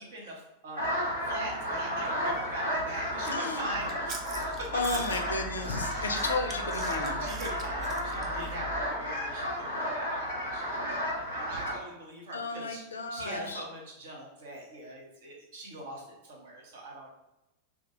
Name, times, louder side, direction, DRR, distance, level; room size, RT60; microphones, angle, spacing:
voice 1, 0.0-5.0 5.9-6.2 7.2-17.1, right 1 dB, 55° right, -2 dB, 0.8 m, -42 dB
sound 1, 0.8-11.7, equal, 85° right, 1.0 m, -33 dB
voice 2, 3.2-3.7 4.7-7.2 12.3-13.6, left 3 dB, 70° left, 4 dB, 0.4 m, -33 dB
Chewing mastication, 3.6-8.9, right 1 dB, 30° right, 0.3 m, -41 dB
2.3 x 2.2 x 2.9 m, 0.94 s
figure-of-eight pair, 90°, 0 cm